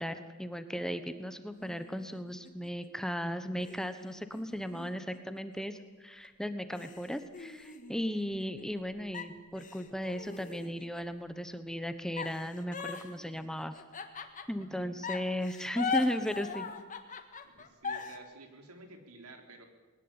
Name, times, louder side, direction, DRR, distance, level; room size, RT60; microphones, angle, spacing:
voice 1, 0.0-13.8 14.5-16.7, equal, 5° left, 10 dB, 1.1 m, -36 dB
sound 1, 1.5-2.9 3.6-5.8 6.2-6.3 6.7-8.8 9.1-11.1 12.2-14.7 15.0-18.2, left 5 dB, 35° left, 1.8 m, -40 dB
voice 2, 14.7-15.0 17.4-19.7, right 2 dB, 85° right, 4 dB, 3.6 m, -52 dB
21.0 x 19.0 x 8.8 m, 1.3 s
head